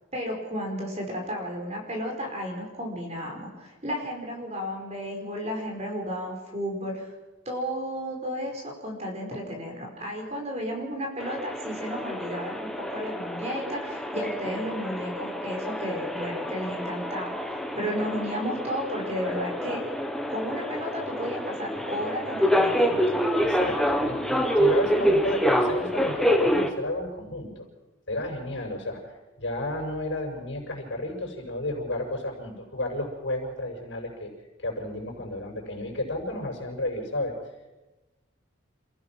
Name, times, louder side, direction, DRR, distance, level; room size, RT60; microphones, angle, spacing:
voice 1, 0.1-7.1 7.4-19.8 20.3-23.2, equal, 35° right, 1 dB, 4.9 m, -33 dB
sound 1, 11.2-26.7, equal, ahead, 1.3 m, -27 dB
voice 2, 23.4-27.6 28.1-34.3 34.6-37.3, left 1 dB, 70° left, 0 dB, 6.2 m, -32 dB
29.0 x 15.5 x 6.2 m, 1.1 s
head